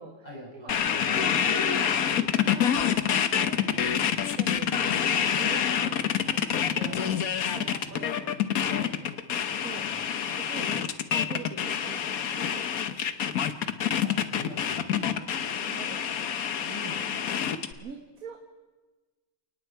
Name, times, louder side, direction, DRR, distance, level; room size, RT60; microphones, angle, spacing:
voice 1, 0.2-1.3 3.4-3.7 6.8-7.0 7.3-8.0 8.3-10.1 14.0-15.2 16.6-17.1, left 1 dB, 25° left, -4 dB, 7.1 m, -46 dB
sound 1, 0.7-17.7, left 8 dB, 75° left, 1.4 m, -27 dB
voice 2, 1.1-2.9 3.3-3.9 4.3-5.0 5.4-6.5 6.7-7.2 7.5-8.9 9.6-9.8 10.3-10.9 11.3-13.2 15.6-16.4 16.9-17.3 17.8-18.4, right 4 dB, 75° right, 3 dB, 2.0 m, -44 dB
30.0 x 18.5 x 4.6 m, 1.3 s
omnidirectional pair, 1.5 m